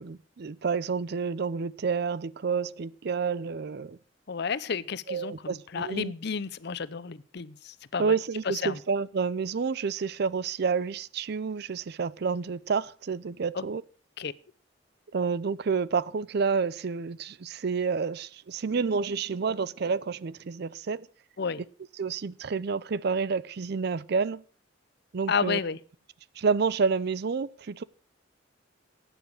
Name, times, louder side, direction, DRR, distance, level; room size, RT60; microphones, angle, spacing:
voice 1, 0.0-4.0 5.1-6.1 8.0-13.8 15.1-21.1 22.0-24.4 25.1-25.6 26.4-27.8, right 5 dB, 55° right, 0.5 m, -29 dB
voice 2, 4.3-8.1 8.6-8.8 13.5-13.6 14.2-14.3 21.4-21.6 25.3-25.8, left 5 dB, 60° left, 0.6 m, -31 dB
12.0 x 9.0 x 6.3 m
head